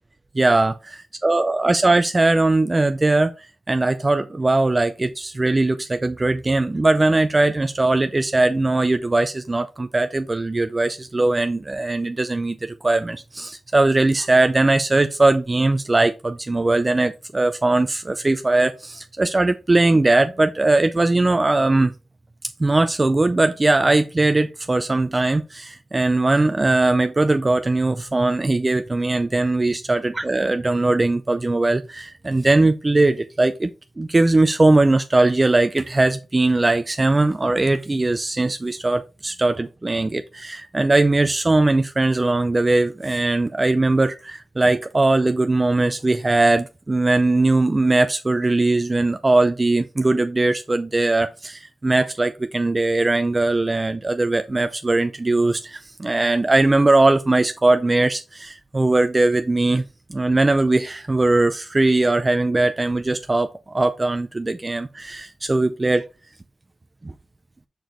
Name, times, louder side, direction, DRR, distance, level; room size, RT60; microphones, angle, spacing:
voice 1, 0.3-0.8 1.2-3.3 3.7-21.9 22.6-33.7 34.0-59.8 60.1-66.0 67.0-67.1, right 2 dB, 30° right, 0.5 m, -20 dB
6.0 x 5.0 x 3.1 m
cardioid pair, 45°, 0 cm